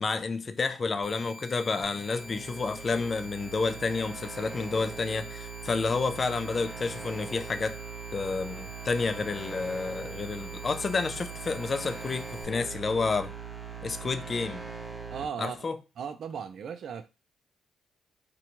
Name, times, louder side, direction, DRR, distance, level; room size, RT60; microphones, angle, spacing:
voice 1, 0.0-7.8 8.1-13.3 13.8-14.6 15.4-15.8, left 4 dB, 35° left, 0.3 m, -30 dB
sound 1, 1.0-12.4, equal, 10° left, 1.0 m, -48 dB
sound 2, 1.8-15.2, right 5 dB, 20° right, 0.8 m, -41 dB
voice 2, 15.1-15.6 16.0-17.1, right 7 dB, 60° right, 0.3 m, -36 dB
2.6 x 2.2 x 2.8 m
cardioid pair, 90°, 0 cm